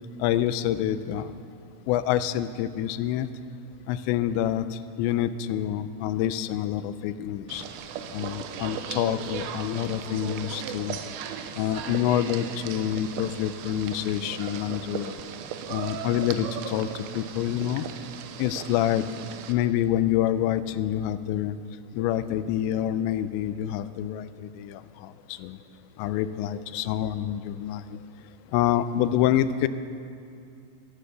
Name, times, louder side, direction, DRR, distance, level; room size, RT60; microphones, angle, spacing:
voice 1, 0.2-1.3 1.9-3.3 3.9-7.6 8.1-11.0 11.6-15.1 15.7-17.9 18.4-19.1 19.5-21.6 22.0-25.6 26.0-28.0 28.5-29.7, left 11 dB, 85° left, 13 dB, 2.8 m, -27 dB
sound 1, 7.5-19.5, right 8 dB, 85° right, 2.9 m, -37 dB
14.0 x 11.5 x 6.7 m, 2.5 s
omnidirectional pair, 5.1 m